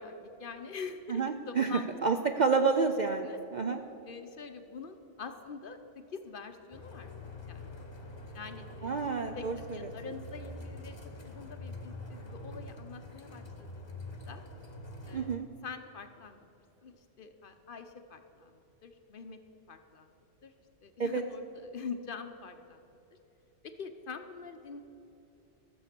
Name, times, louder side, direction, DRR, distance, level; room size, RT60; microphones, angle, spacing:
voice 1, 0.0-1.9 3.2-3.4 4.0-5.8 6.1-7.1 7.5-7.8 8.3-11.0 11.2-14.4 15.1-16.4 16.8-19.4 19.7-20.2 20.4-20.5 20.8-22.9 23.6-24.8, left 5 dB, 50° left, 7 dB, 0.8 m, -45 dB
voice 2, 1.1-3.3 3.5-3.8 8.8-9.8 15.1-15.5 21.0-21.2, right 5 dB, 55° right, 6 dB, 0.5 m, -29 dB
sound 1, 6.7-15.4, left 1 dB, 25° left, 1.0 m, -45 dB
13.0 x 7.2 x 6.7 m, 2.9 s
omnidirectional pair, 1.2 m